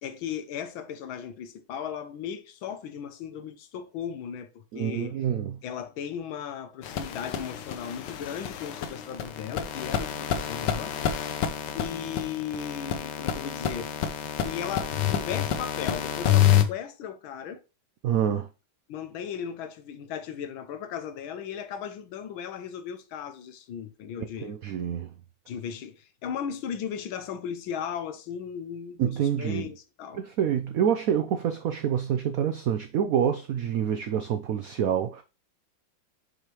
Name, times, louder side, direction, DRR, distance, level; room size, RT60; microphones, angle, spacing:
voice 1, 0.0-5.3 5.6-10.9 11.2-13.9 14.4-17.6 18.9-24.5 25.5-30.2, left 8 dB, 90° left, 1.6 m, -36 dB
voice 2, 4.7-5.5 18.0-18.5 24.4-25.1 29.0-29.6 30.1-35.2, right 9 dB, 85° right, 0.7 m, -27 dB
sound 1, 6.8-16.6, left 10 dB, 70° left, 1.3 m, -28 dB
6.5 x 5.0 x 3.0 m
omnidirectional pair, 2.1 m